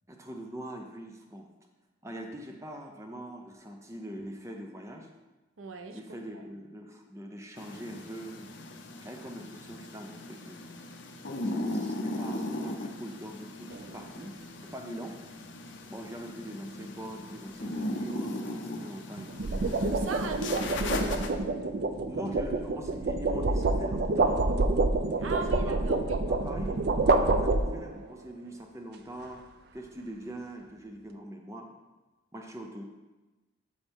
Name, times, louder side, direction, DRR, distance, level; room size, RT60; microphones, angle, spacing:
voice 1, 0.1-1.5 2.0-5.1 5.9-8.7 9.0-10.7 11.4-15.2 15.9-19.9 22.1-24.6 25.2-29.4 29.7-31.7 32.3-32.8, right 1 dB, 15° right, 2 dB, 0.7 m, -43 dB
voice 2, 5.6-6.0 19.9-20.7 25.2-26.2, right 4 dB, 85° right, 5 dB, 0.7 m, -37 dB
sound 1, 7.5-21.3, left 1 dB, 65° left, 0.7 m, -38 dB
sound 2, 13.7-14.0 19.2-28.1, right 2 dB, 55° right, 0.4 m, -27 dB
12.0 x 4.2 x 3.6 m, 1.1 s
head